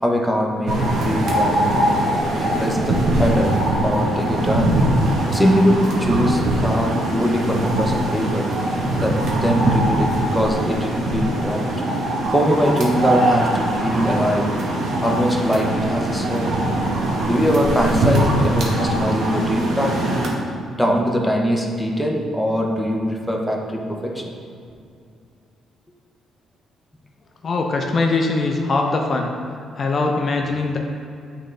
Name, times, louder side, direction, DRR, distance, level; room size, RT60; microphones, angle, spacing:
voice 1, 0.0-2.0 2.3-4.9 5.3-8.5 9.0-11.7 12.3-14.6 15.0-16.6 17.2-20.1 20.7-24.4, equal, ahead, -1 dB, 0.7 m, -22 dB
sound 1, 0.7-20.3, right 1 dB, 65° right, 1.1 m, -21 dB
voice 2, 27.4-29.3 29.7-30.8, left 3 dB, 40° left, 2 dB, 0.5 m, -21 dB
8.8 x 3.7 x 3.3 m, 2.4 s
cardioid pair, 120°, 0 cm